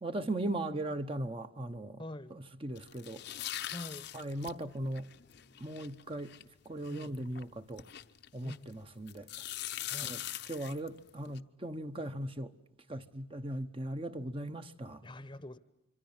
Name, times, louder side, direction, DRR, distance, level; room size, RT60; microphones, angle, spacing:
voice 1, 0.0-2.0 2.3-3.2 4.1-5.1 5.6-6.3 6.6-7.8 8.3-9.3 10.0-10.2 10.5-12.5 12.9-15.0, right 1 dB, 25° right, 1.0 m, -38 dB
voice 2, 2.0-2.4 3.7-4.1 6.9-7.1 8.4-8.7 9.9-10.2 15.0-15.6, left 1 dB, 25° left, 0.9 m, -45 dB
sound 1, 2.8-8.7 9.1-11.4, left 12 dB, 55° left, 0.8 m, -43 dB
26.0 x 25.5 x 7.3 m
head